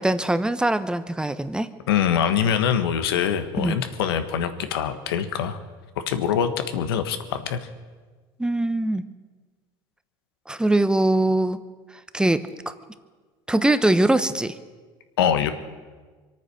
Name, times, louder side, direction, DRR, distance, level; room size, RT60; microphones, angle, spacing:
voice 1, 0.0-1.7 3.6-3.8 8.4-9.0 10.5-11.6 12.1-12.7 13.5-14.5, right 1 dB, 5° right, 12 dB, 0.9 m, -22 dB
voice 2, 1.9-5.6 6.1-7.6 15.2-15.5, left 8 dB, 85° left, 9 dB, 1.3 m, -24 dB
24.5 x 9.1 x 6.5 m, 1.4 s
hypercardioid pair, 85°, 12 cm